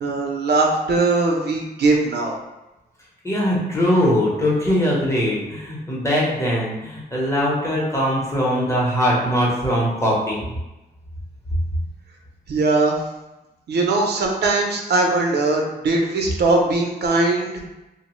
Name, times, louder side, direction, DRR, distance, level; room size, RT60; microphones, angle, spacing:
voice 1, 0.0-2.4 12.5-13.0 13.7-17.6, right 3 dB, 80° right, 0 dB, 0.5 m, -20 dB
voice 2, 3.2-10.5, equal, 15° left, -5 dB, 0.7 m, -21 dB
2.7 x 2.0 x 3.0 m, 1.0 s
wide cardioid pair, 130°, 17 cm